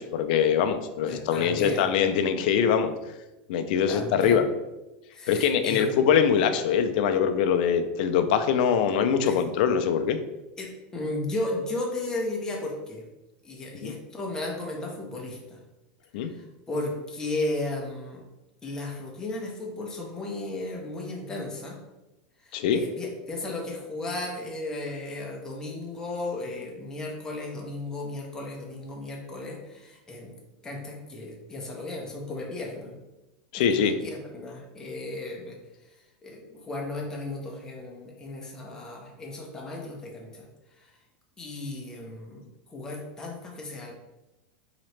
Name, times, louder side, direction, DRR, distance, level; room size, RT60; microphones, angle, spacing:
voice 1, 0.0-2.9 3.5-4.4 5.3-10.2 13.8-13.9 16.1-16.3 22.5-22.8 33.5-33.9, left 7 dB, 65° left, 8 dB, 0.4 m, -23 dB
voice 2, 1.1-1.9 3.9-4.5 5.1-5.9 9.3-9.4 10.6-13.0 13.4-15.6 16.3-18.2 18.6-21.8 22.4-30.3 30.6-32.9 33.7-35.6 36.2-40.5 40.8-40.9 41.4-42.4 42.7-43.9, left 2 dB, 10° left, -1 dB, 0.7 m, -35 dB
4.1 x 2.9 x 3.2 m, 1.0 s
supercardioid pair, 145°, 5 cm